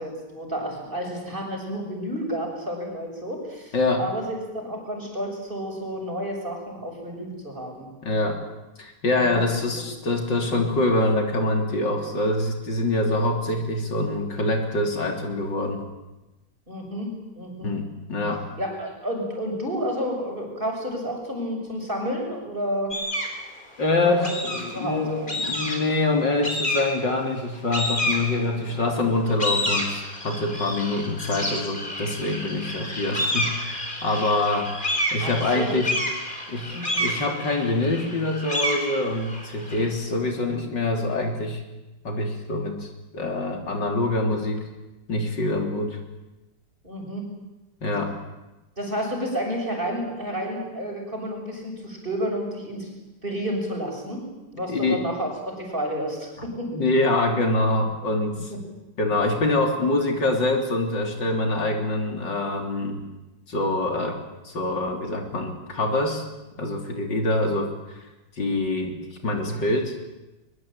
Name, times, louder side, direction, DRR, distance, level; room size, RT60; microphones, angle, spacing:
voice 1, 0.0-7.9 9.1-9.9 16.7-17.7 18.6-22.9 24.0-24.3 24.7-25.4 35.2-35.8 36.7-37.1 46.8-47.3 48.8-52.9 53.2-54.2 54.5-56.7 58.5-58.6, equal, 25° right, 1 dB, 6.9 m, -31 dB
voice 2, 3.7-4.0 8.0-8.4 8.8-15.8 17.6-18.4 23.8-34.7 35.1-35.9 36.5-41.6 42.0-44.6 45.1-46.0 47.8-48.2 54.7-55.1 56.4-56.5 56.7-58.5 59.0-63.0 63.5-64.2 64.4-66.2 66.5-68.0 68.4-69.0 69.2-69.9, left 2 dB, 75° left, 3 dB, 4.1 m, -25 dB
sound 1, 22.9-23.4 24.2-24.9 25.3-26.0 26.4-27.1 27.7-28.7 29.1-39.9, left 1 dB, 25° left, 4.5 m, -29 dB
23.0 x 22.0 x 8.9 m, 1.0 s
omnidirectional pair, 1.9 m